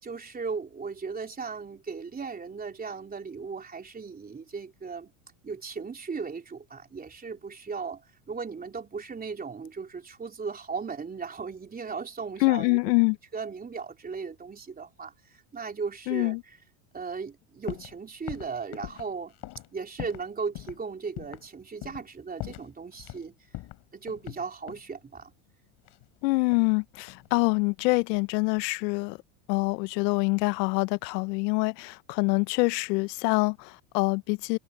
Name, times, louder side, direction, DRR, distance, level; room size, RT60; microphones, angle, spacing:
voice 1, 0.0-5.1 5.4-12.8 13.3-16.3 16.9-19.3 19.7-23.5 23.9-25.3, right 5 dB, 20° right, 3.5 m, -37 dB
voice 2, 12.4-13.2 16.1-16.4 26.2-29.2 29.5-34.6, left 27 dB, 75° left, 1.0 m, -25 dB
sound 1, 17.7-18.0 18.3-20.3 20.6-20.8 21.2-21.5 21.8-22.1 22.4-23.2 23.5-24.9 25.9-26.8 27.1-27.5, left 16 dB, 50° left, 3.5 m, -41 dB
supercardioid pair, 120°, 49 cm